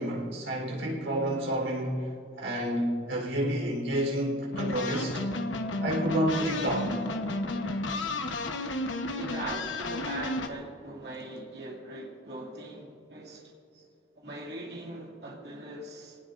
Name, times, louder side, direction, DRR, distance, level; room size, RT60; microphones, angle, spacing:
voice 1, 0.0-5.3 5.8-7.0, right 1 dB, 80° right, 4.0 m, -30 dB
sound 1, 4.5-10.5, left 2 dB, 90° left, 1.1 m, -32 dB
voice 2, 9.2-13.5 14.2-16.2, right 2 dB, 60° right, 2.5 m, -40 dB
24.5 x 18.0 x 2.6 m
head